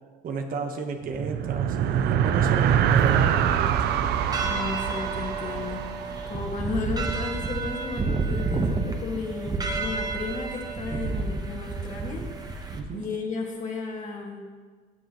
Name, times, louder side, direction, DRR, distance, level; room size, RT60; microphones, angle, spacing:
voice 1, 0.2-4.3 12.7-13.0, right 4 dB, 55° right, 4 dB, 1.3 m, -33 dB
sound 1, 1.0-6.7, right 9 dB, 75° right, 0.6 m, -24 dB
sound 2, 2.9-12.8, right 3 dB, 25° right, 1.1 m, -31 dB
voice 2, 4.4-14.4, left 4 dB, 45° left, 0 dB, 2.0 m, -34 dB
16.0 x 8.0 x 3.1 m, 1.5 s
cardioid pair, 110°, 17 cm